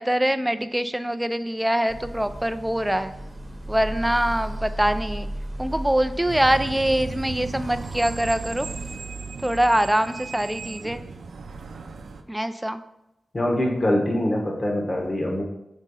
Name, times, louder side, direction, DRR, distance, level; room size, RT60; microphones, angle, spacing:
voice 1, 0.0-3.1 3.7-5.3 5.6-8.7 9.4-11.0 12.3-12.8, right 1 dB, 5° right, 11 dB, 0.3 m, -24 dB
sound 1, 1.9-9.1, right 1 dB, 20° right, 0.9 m, -35 dB
sound 2, 6.3-12.2, right 4 dB, 75° right, 0.5 m, -36 dB
voice 2, 13.3-15.4, left 1 dB, 35° left, 0 dB, 1.1 m, -23 dB
5.2 x 3.6 x 5.4 m, 0.87 s
wide cardioid pair, 110°, 0 cm